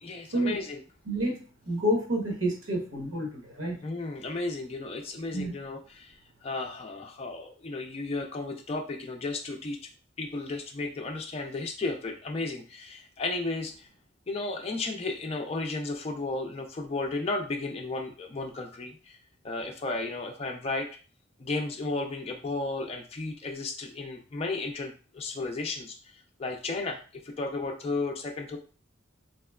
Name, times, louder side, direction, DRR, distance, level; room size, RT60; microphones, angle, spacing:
voice 1, 0.0-0.8 3.8-6.1 6.4-9.8 10.2-13.9 14.3-19.2 19.4-20.9 21.4-26.0 26.4-28.6, left 3 dB, 30° left, 2 dB, 0.4 m, -34 dB
voice 2, 1.1-3.8 5.3-5.5, equal, 90° right, 1 dB, 1.0 m, -29 dB
3.3 x 2.9 x 2.2 m, 0.37 s
head